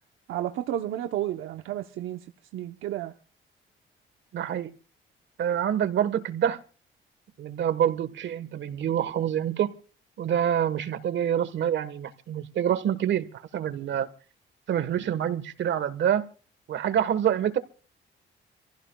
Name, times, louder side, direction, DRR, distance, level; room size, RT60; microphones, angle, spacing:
voice 1, 0.3-2.3 2.5-3.1, right 12 dB, 85° right, 0.9 m, -31 dB
voice 2, 4.3-4.7 5.4-6.6 7.4-9.8 10.2-14.1 14.7-16.3 16.7-17.6, right 9 dB, 65° right, 1.4 m, -26 dB
27.0 x 15.5 x 2.3 m
cardioid pair, 90°, 20 cm